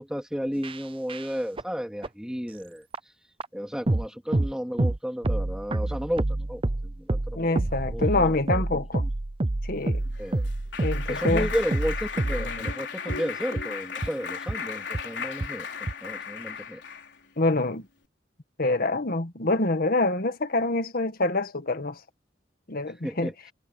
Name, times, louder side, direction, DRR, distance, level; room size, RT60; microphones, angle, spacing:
voice 1, 0.0-2.9 3.5-7.5 7.9-9.1 10.2-10.5 11.1-15.7 16.0-16.8 23.0-23.3, equal, 5° right, 2.8 m, -33 dB
sound 1, 0.6-0.8 1.1-1.2 1.6-1.7 2.0-2.1 2.9-3.0 3.4-3.5 3.9-4.1 4.3-4.5 4.8-5.0 5.2-12.7 13.1-13.2 13.6-13.7 14.0-14.1 14.5-14.6 14.9-15.0 15.4-15.5 15.9-16.0, right 2 dB, 30° right, 0.7 m, -28 dB
voice 2, 7.4-9.0 9.6-10.0 10.8-11.5 17.4-17.9 18.6-22.0 22.7-23.3, left 2 dB, 55° left, 1.7 m, -26 dB
Clapping, 9.9-17.2, left 5 dB, 85° left, 3.8 m, -35 dB
head